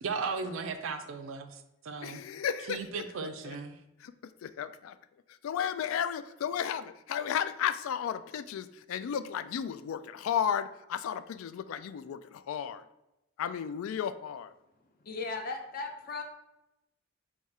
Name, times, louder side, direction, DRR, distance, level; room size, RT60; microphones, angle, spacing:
voice 1, 0.0-2.2 2.7-3.8, right 4 dB, 80° right, 7 dB, 0.4 m, -36 dB
voice 2, 2.0-3.1 3.4-3.6 4.0-5.0 5.4-12.8 13.4-14.5, left 8 dB, 90° left, 14 dB, 0.3 m, -34 dB
voice 3, 15.0-16.2, left 3 dB, 45° left, 3 dB, 0.6 m, -36 dB
4.1 x 2.4 x 4.7 m, 0.91 s
head